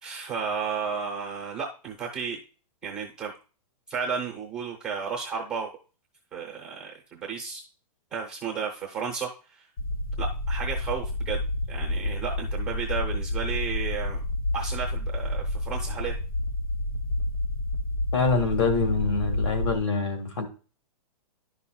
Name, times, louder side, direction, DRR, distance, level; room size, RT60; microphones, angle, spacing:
voice 1, 0.0-2.4 2.8-3.3 3.9-5.7 6.3-7.6 8.1-9.7 10.2-11.4 11.7-14.2 14.5-16.2, right 6 dB, 5° right, -1 dB, 0.5 m, -33 dB
sound 1, 9.8-19.8, left 1 dB, 60° left, 1.8 m, -29 dB
voice 2, 18.1-20.5, left 4 dB, 45° left, 7 dB, 1.7 m, -25 dB
11.0 x 5.7 x 2.2 m, 0.35 s
hypercardioid pair, 175°, 20 cm